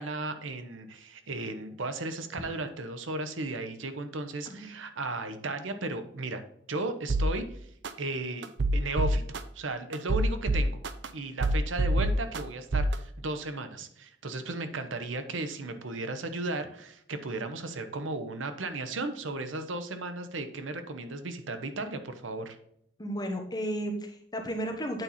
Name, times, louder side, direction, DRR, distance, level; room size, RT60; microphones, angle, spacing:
voice 1, 0.0-6.4 6.7-7.7 8.0-8.5 8.7-10.8 11.1-22.6, right 2 dB, 85° right, 9 dB, 0.9 m, -35 dB
sound 1, 7.1-7.3 7.8-7.9 8.4-9.4 9.9-11.1 11.4-12.4 12.7-12.9, right 1 dB, 65° right, 0.6 m, -25 dB
voice 2, 23.0-25.0, equal, 20° left, 3 dB, 1.1 m, -33 dB
8.8 x 4.1 x 4.1 m, 0.71 s
head